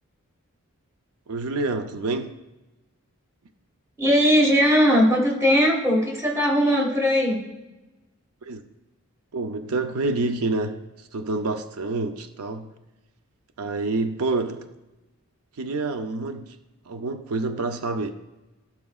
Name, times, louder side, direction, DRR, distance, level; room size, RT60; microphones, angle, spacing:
voice 1, 1.3-2.4 8.4-8.6 9.3-12.7 13.6-14.7 15.6-16.6 16.9-18.1, right 3 dB, 80° right, 0.6 m, -28 dB
voice 2, 4.0-7.4, equal, 15° right, 1.4 m, -19 dB
16.0 x 5.8 x 2.4 m
head